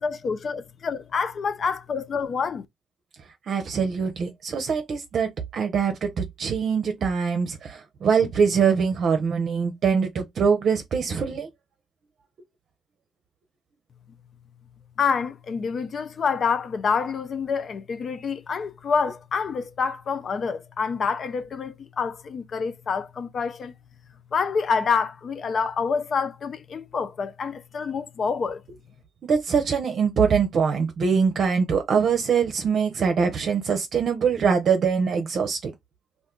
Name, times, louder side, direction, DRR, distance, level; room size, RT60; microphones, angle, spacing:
voice 1, 0.0-2.7 15.0-23.7 24.3-28.6, left 5 dB, 50° left, 0.4 m, -27 dB
voice 2, 3.5-11.5 29.2-35.7, right 6 dB, 60° right, 0.6 m, -23 dB
2.5 x 2.3 x 3.7 m
cardioid pair, 90°, 0 cm